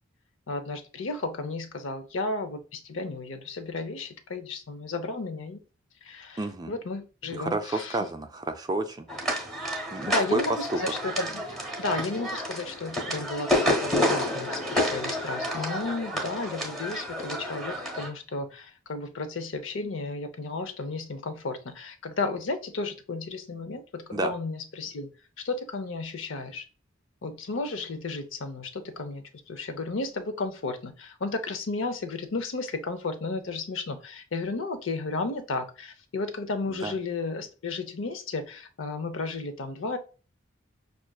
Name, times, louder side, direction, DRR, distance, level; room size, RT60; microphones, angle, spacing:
voice 1, 0.5-5.6 6.0-6.4 6.7-8.0 10.1-25.1 25.4-26.6 27.2-40.0, left 3 dB, 75° left, 0.6 m, -33 dB
voice 2, 6.4-6.8 7.3-9.1 9.9-10.4 10.7-10.8 24.1-24.3 36.7-36.9, right 2 dB, 20° right, 0.4 m, -30 dB
sound 1, 9.1-18.1, equal, ahead, 1.0 m, -29 dB
6.0 x 2.5 x 2.3 m
head